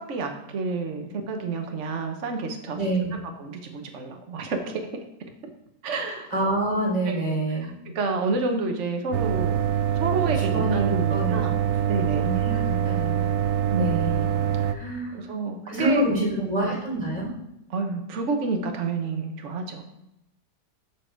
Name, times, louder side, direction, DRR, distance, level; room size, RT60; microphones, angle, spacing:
voice 1, 0.1-2.8 3.4-5.0 5.8-6.3 7.0-7.4 7.9-9.6 9.9-11.5 11.9-12.3 13.7-14.0 14.6-14.8 15.0-16.6 17.7-19.8, right 3 dB, 50° right, 4 dB, 1.3 m, -29 dB
voice 2, 2.7-3.2 6.3-7.7 10.3-10.8 11.1-13.2 13.7-14.2 14.7-15.2 15.7-17.3, right 1 dB, 20° right, -6 dB, 3.6 m, -27 dB
sound 1, 9.1-14.7, right 9 dB, 70° right, 0.8 m, -24 dB
13.5 x 4.8 x 4.6 m, 0.85 s
omnidirectional pair, 1.8 m